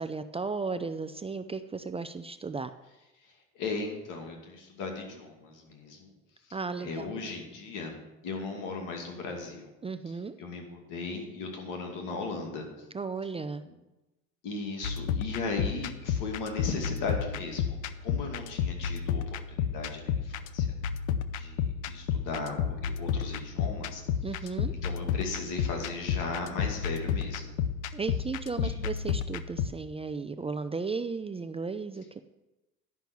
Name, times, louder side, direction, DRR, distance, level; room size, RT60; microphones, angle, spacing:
voice 1, 0.0-2.7 6.5-7.1 9.8-10.4 12.9-13.6 24.2-24.7 27.9-32.2, right 4 dB, 20° right, 9 dB, 0.5 m, -35 dB
voice 2, 3.5-6.1 6.5-8.0 8.2-9.7 10.1-12.6 13.6-13.7 14.4-20.7 21.4-24.0 24.4-27.5 28.6-28.8, left 3 dB, 70° left, 2 dB, 2.5 m, -37 dB
sound 1, 14.8-29.7, left 7 dB, 85° left, 0.6 m, -32 dB
11.0 x 5.8 x 7.0 m, 1.0 s
supercardioid pair, 80°, 33 cm